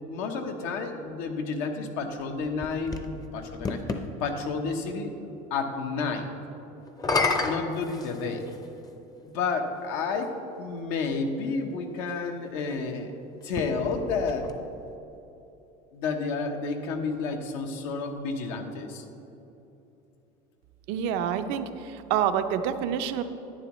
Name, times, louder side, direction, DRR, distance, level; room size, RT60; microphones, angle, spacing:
voice 1, 0.1-3.8 4.2-5.1 5.5-6.3 7.3-8.5 9.3-13.1 13.4-14.5 15.9-19.0, left 4 dB, 80° left, 4 dB, 1.0 m, -31 dB
sound 1, 2.2-4.1 6.9-8.7 9.6-9.7 13.4-15.0, left 3 dB, 20° left, 0.6 m, -31 dB
voice 2, 20.9-23.2, right 9 dB, 70° right, 9 dB, 0.6 m, -27 dB
11.0 x 9.2 x 3.1 m, 3.0 s
supercardioid pair, 120°, 18 cm